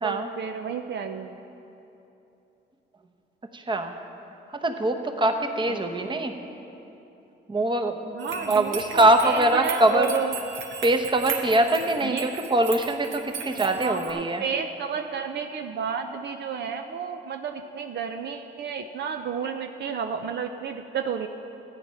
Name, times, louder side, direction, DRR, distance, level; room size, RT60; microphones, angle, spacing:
voice 1, 0.0-1.4 5.7-5.8 8.1-10.4 12.0-12.4 13.7-21.3, right 6 dB, 60° right, 6 dB, 0.6 m, -31 dB
voice 2, 3.5-3.9 4.5-6.3 7.5-8.2 8.5-10.1 10.8-14.4, right 1 dB, 25° right, 5 dB, 1.0 m, -23 dB
sound 1, 8.2-14.1, right 5 dB, 80° right, 1.4 m, -37 dB
13.5 x 9.0 x 5.7 m, 2.9 s
cardioid pair, 90°, 20 cm